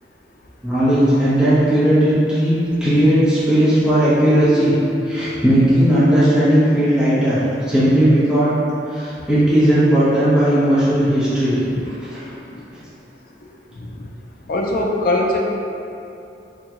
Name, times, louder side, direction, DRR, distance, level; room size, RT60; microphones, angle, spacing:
voice 1, 0.6-2.5 2.8-4.7 5.0-7.4 7.7-8.5 8.9-12.2, right 1 dB, 5° right, -13 dB, 0.9 m, -16 dB
sound 1, 4.4-6.5, equal, 70° right, 1.0 m, -29 dB
voice 2, 14.5-15.4, left 1 dB, 55° left, 0 dB, 0.5 m, -21 dB
3.7 x 3.5 x 2.9 m, 2.8 s
head